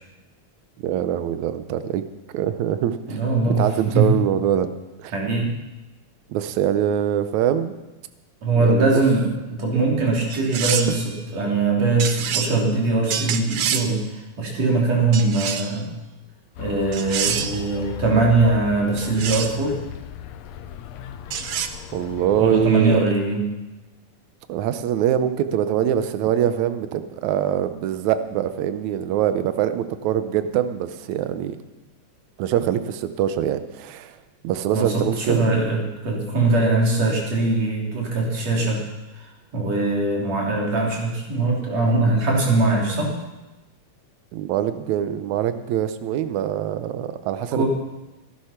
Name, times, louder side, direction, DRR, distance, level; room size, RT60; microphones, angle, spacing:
voice 1, 0.8-2.0 2.3-3.0 3.5-4.7 5.0-5.1 6.3-7.7 8.6-9.0 21.9-23.0 24.5-31.6 32.4-34.2 34.4-35.7 44.3-47.6, right 10 dB, 70° right, 11 dB, 2.0 m, -23 dB
voice 2, 3.1-4.1 5.1-5.5 8.4-14.0 14.4-15.9 16.6-19.8 22.4-23.5 34.7-38.8 39.2-43.2 47.5-47.7, right 3 dB, 55° right, -2 dB, 4.3 m, -21 dB
sound 1, 10.3-11.0 12.0-12.5 13.1-13.9 15.1-15.8 16.9-17.6 19.0-19.6 21.3-21.7, right 8 dB, 90° right, 1.2 m, -26 dB
sound 2, 16.6-22.7, left 10 dB, 75° left, 1.6 m, -37 dB
16.0 x 11.5 x 5.8 m, 1.1 s
omnidirectional pair, 3.7 m